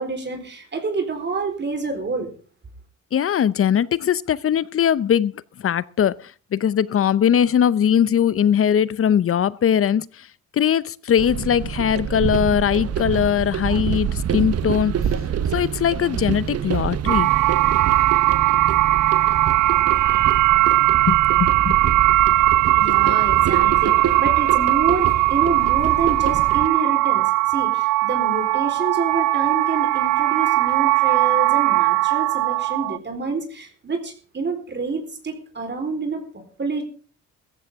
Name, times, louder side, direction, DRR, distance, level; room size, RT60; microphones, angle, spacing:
voice 1, 0.0-2.3 22.7-36.8, right 3 dB, 35° right, 4.1 m, -28 dB
voice 2, 3.1-5.3 5.6-6.2 6.5-10.1 10.5-15.0 15.5-17.3 21.1-21.8, left 9 dB, 45° left, 0.8 m, -20 dB
sound 1, 11.2-26.7, right 8 dB, 55° right, 1.1 m, -27 dB
sound 2, 17.1-33.0, right 18 dB, 75° right, 0.5 m, -19 dB
16.5 x 14.5 x 3.6 m
cardioid pair, 90°, 30 cm